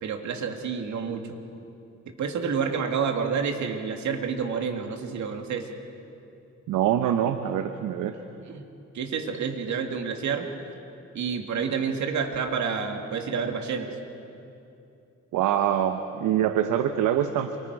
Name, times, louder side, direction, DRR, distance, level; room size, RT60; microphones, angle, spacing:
voice 1, 0.0-1.4 2.1-5.7 8.5-8.6 8.9-10.5 11.1-13.9, right 6 dB, 70° right, 4 dB, 2.4 m, -29 dB
voice 2, 6.7-8.1 15.3-17.6, right 10 dB, 90° right, 7 dB, 1.0 m, -24 dB
28.0 x 24.5 x 4.8 m, 2.7 s
cardioid pair, 90°, 30 cm